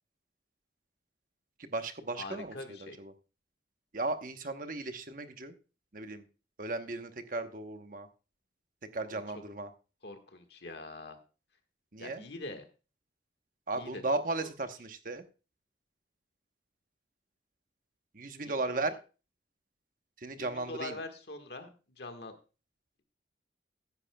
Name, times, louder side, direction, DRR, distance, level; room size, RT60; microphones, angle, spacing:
voice 1, 1.6-3.1 3.9-5.5 5.9-6.2 6.6-8.1 8.9-9.7 11.9-12.2 13.7-15.2 18.1-19.0 20.2-21.0, right 2 dB, 45° right, 8 dB, 1.0 m, -36 dB
voice 2, 2.2-3.0 9.1-9.2 10.0-11.2 12.0-12.6 13.7-14.0 14.4-14.5 20.4-22.3, left 2 dB, 65° left, 6 dB, 1.6 m, -43 dB
14.5 x 10.5 x 2.3 m, 0.33 s
head